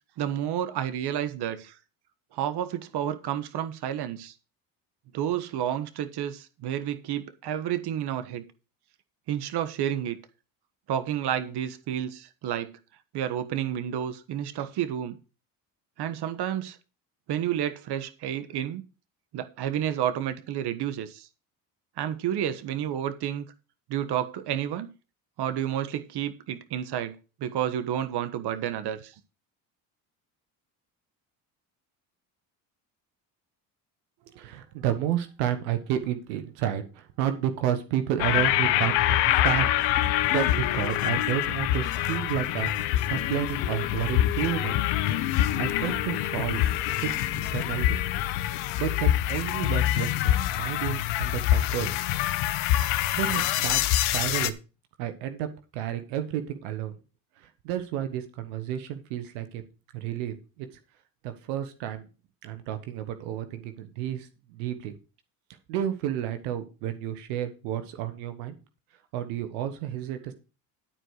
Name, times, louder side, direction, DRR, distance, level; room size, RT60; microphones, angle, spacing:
voice 1, 0.2-1.8 2.3-4.3 5.1-8.4 9.3-10.2 10.9-12.8 13.1-15.2 16.0-16.8 17.3-18.8 19.3-21.3 22.0-23.4 23.9-24.9 25.4-29.1, right 10 dB, 60° right, 1.3 m, -30 dB
voice 2, 34.2-39.7 40.3-44.7 45.5-46.6 47.0-48.0 48.8-51.9 52.8-54.5 55.0-56.9 57.4-59.6 59.9-60.7 61.2-62.0 62.4-64.9 65.7-68.6 69.1-70.3, right 11 dB, 90° right, 1.3 m, -31 dB
sound 1, 38.2-54.5, left 13 dB, 80° left, 1.0 m, -25 dB
12.0 x 4.8 x 6.5 m
supercardioid pair, 75°, 43 cm